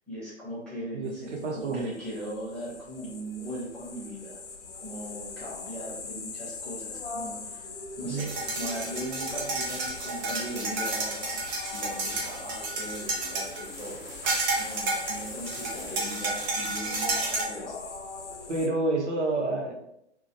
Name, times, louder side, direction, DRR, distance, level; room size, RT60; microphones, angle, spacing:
voice 1, 0.1-4.4 4.7-7.7 8.0-11.4 11.7-17.8, right 1 dB, 5° left, -10 dB, 0.5 m, -39 dB
sound 1, 1.0-18.7, left 4 dB, 80° left, 0.5 m, -41 dB
voice 2, 1.4-1.8 8.0-8.2 18.5-19.7, right 2 dB, 75° right, 1 dB, 0.7 m, -28 dB
sound 2, 8.2-17.4, right 2 dB, 40° right, 0.8 m, -32 dB
2.1 x 2.1 x 2.8 m, 0.77 s
figure-of-eight pair, 120°, 35 cm